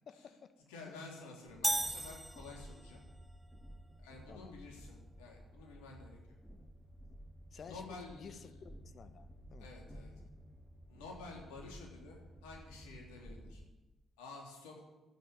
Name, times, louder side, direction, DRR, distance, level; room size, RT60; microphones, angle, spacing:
voice 1, 0.1-0.5 0.9-1.1 4.3-4.6 7.5-9.7 10.2-10.3, left 6 dB, 50° left, 10 dB, 1.1 m, -53 dB
voice 2, 0.7-3.0 4.0-6.2 7.6-8.6 9.6-10.1 10.9-13.6 14.2-14.8, left 3 dB, 75° left, -1 dB, 3.8 m, -51 dB
Train, 1.5-13.7, equal, 5° left, 2.8 m, -54 dB
sound 1, 1.6-3.0, right 2 dB, 15° right, 0.6 m, -36 dB
12.5 x 9.9 x 9.7 m, 1.1 s
figure-of-eight pair, 45°, 0 cm